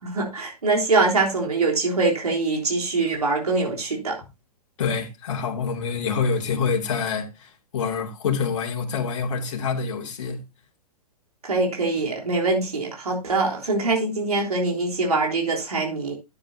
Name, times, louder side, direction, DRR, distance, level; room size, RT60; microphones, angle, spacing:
voice 1, 0.0-4.2 11.4-16.1, right 3 dB, 70° right, 3.6 m, -23 dB
voice 2, 4.8-10.4, left 5 dB, 50° left, 2.5 m, -26 dB
12.5 x 9.6 x 2.8 m
figure-of-eight pair, 110°, 20 cm